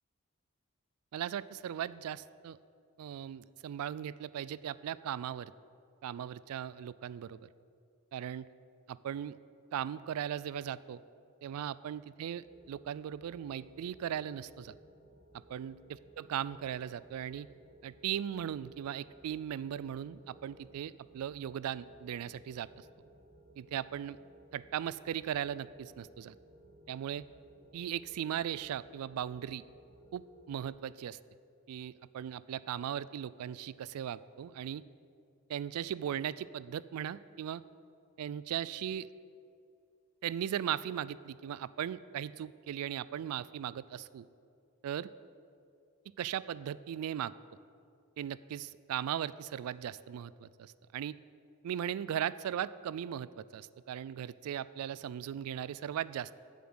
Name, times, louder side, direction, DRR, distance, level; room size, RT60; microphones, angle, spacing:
voice 1, 1.1-2.6 3.0-5.5 6.0-7.5 8.1-8.5 8.9-9.4 9.7-11.0 11.4-14.7 15.5-15.8 16.2-17.5 17.8-22.8 23.6-24.2 24.5-26.3 26.9-27.2 27.7-29.6 30.1-31.2 31.7-34.8 35.5-37.6 38.2-39.1 40.2-44.2 44.8-45.1 46.2-47.3 48.2-51.1 51.6-56.3, right 9 dB, 80° right, 17 dB, 0.3 m, -38 dB
sound 1, 12.4-30.7, right 1 dB, 40° right, 1.1 m, -60 dB
7.6 x 7.1 x 7.9 m, 2.5 s
head